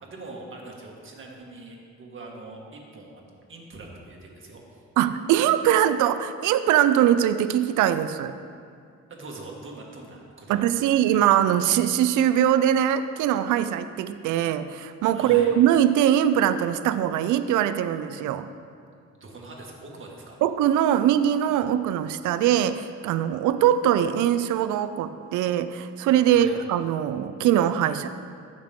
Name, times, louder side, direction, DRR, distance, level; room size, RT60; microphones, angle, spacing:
voice 1, 0.0-4.8 9.1-11.2 15.1-15.5 19.2-20.4 26.3-26.5, right 2 dB, 40° right, -1 dB, 2.0 m, -43 dB
voice 2, 5.0-8.3 10.5-18.5 20.4-28.1, right 10 dB, 80° right, 11 dB, 0.5 m, -22 dB
14.5 x 6.2 x 3.7 m, 2.3 s
cardioid pair, 90°, 30 cm